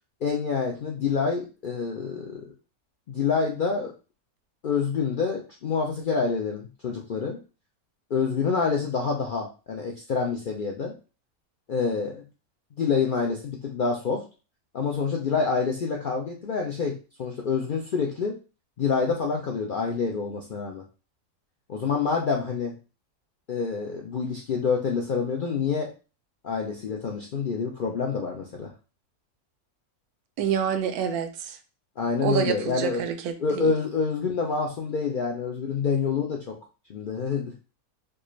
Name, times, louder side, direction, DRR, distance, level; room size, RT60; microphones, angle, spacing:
voice 1, 0.2-2.4 3.1-3.9 4.6-7.4 8.1-10.9 11.7-12.2 12.8-14.2 14.7-18.3 18.8-20.8 21.7-22.7 23.5-25.9 26.4-28.7 32.0-33.0 33.4-36.6 36.9-37.5, left 5 dB, 75° left, 0.4 m, -27 dB
voice 2, 30.4-31.6 32.2-33.7, right 8 dB, 80° right, 1.1 m, -27 dB
4.4 x 2.4 x 3.1 m
omnidirectional pair, 1.6 m